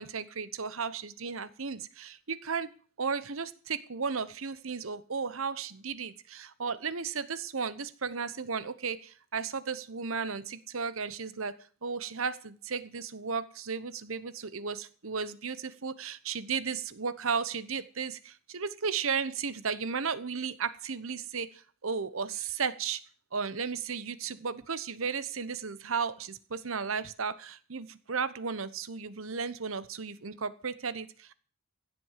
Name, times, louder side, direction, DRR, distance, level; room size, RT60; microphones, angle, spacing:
voice 1, 0.0-2.7 3.0-23.0 23.3-31.3, right 5 dB, 70° right, 16 dB, 1.0 m, -34 dB
16.0 x 7.9 x 7.4 m, 0.42 s
head